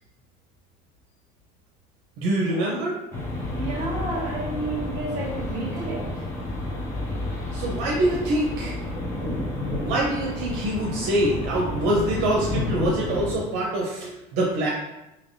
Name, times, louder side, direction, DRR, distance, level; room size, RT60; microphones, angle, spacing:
voice 1, 2.2-2.9 7.5-8.8 9.8-14.7, right 1 dB, 70° right, -3 dB, 0.7 m, -25 dB
sound 1, 3.1-13.3, left 1 dB, 15° left, 0.6 m, -30 dB
voice 2, 3.5-6.1, right 2 dB, 40° right, -4 dB, 1.4 m, -31 dB
3.3 x 2.9 x 2.7 m, 0.92 s
cardioid pair, 165°, 20 cm